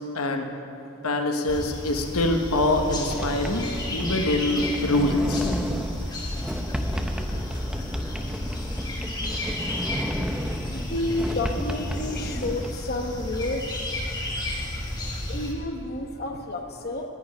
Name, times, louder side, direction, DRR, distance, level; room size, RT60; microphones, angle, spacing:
voice 1, 0.1-0.5 1.0-5.5, left 2 dB, 85° left, 4 dB, 1.2 m, -24 dB
sound 1, 1.5-15.5, left 1 dB, 20° left, 1.4 m, -32 dB
Sliding door, 3.1-12.7, equal, 5° right, 0.6 m, -32 dB
voice 2, 10.7-13.7 15.3-17.0, left 2 dB, 45° left, 3 dB, 1.0 m, -30 dB
11.0 x 9.5 x 9.9 m, 2.9 s
head